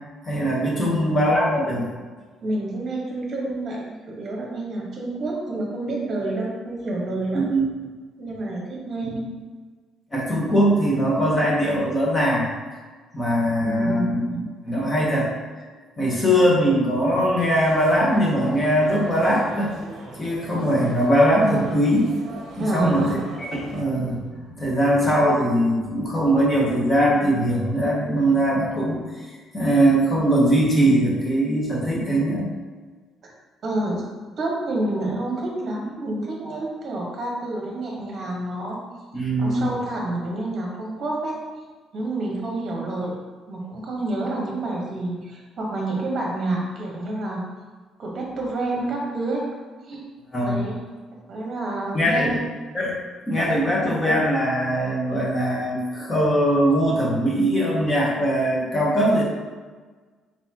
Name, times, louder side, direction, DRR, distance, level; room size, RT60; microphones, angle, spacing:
voice 1, 0.2-1.9 7.3-7.6 9.1-9.2 10.1-12.5 13.1-14.2 14.7-15.3 16.0-19.7 20.2-22.1 22.6-32.5 39.1-39.7 50.3-50.6 51.9-52.4 52.7-59.2, equal, 15° left, -4 dB, 1.0 m, -21 dB
voice 2, 0.7-1.4 2.4-7.5 8.2-9.2 13.6-14.5 22.6-23.2 33.6-34.0 34.4-38.8 39.1-41.4 41.9-43.1 43.5-47.4 48.0-49.5 49.8-50.0 50.4-50.8 51.3-52.4, right 2 dB, 40° right, -2 dB, 1.2 m, -28 dB
sound 1, 17.4-23.8, right 2 dB, 60° right, 0.7 m, -40 dB
4.3 x 4.1 x 2.8 m, 1.4 s
cardioid pair, 160°, 0 cm